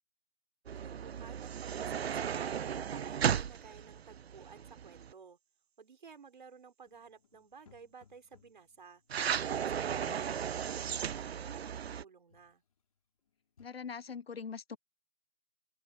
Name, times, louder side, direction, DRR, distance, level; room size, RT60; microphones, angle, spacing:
sound 1, 0.7-5.1 9.1-12.0, right 8 dB, 70° right, 0.6 m, -35 dB
voice 1, 0.8-5.4 5.8-9.0 9.4-12.6, right 5 dB, 50° right, 4.7 m, -54 dB
sound 2, 6.8-10.6 12.3-12.8 13.2-13.7, left 7 dB, 35° left, 4.7 m, -68 dB
voice 2, 13.6-14.8, left 6 dB, 65° left, 1.1 m, -42 dB
open air
hypercardioid pair, 180°, 32 cm